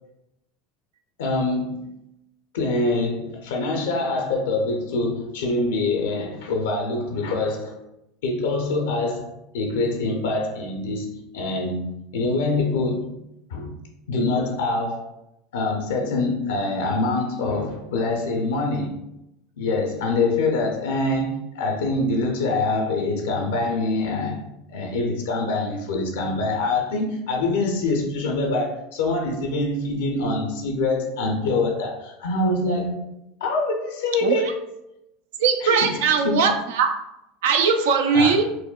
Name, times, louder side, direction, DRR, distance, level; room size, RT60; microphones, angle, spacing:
voice 1, 1.2-1.9 2.5-7.8 8.2-13.1 13.5-13.7 14.1-15.1 15.5-19.0 19.6-24.4 24.7-33.0 33.4-34.7 35.6-36.5 38.1-38.3, left 2 dB, 80° left, 0.5 m, -25 dB
voice 2, 35.4-36.9 37.4-38.5, right 5 dB, 75° right, 0.3 m, -19 dB
3.9 x 2.1 x 2.2 m
hypercardioid pair, 95°, 0 cm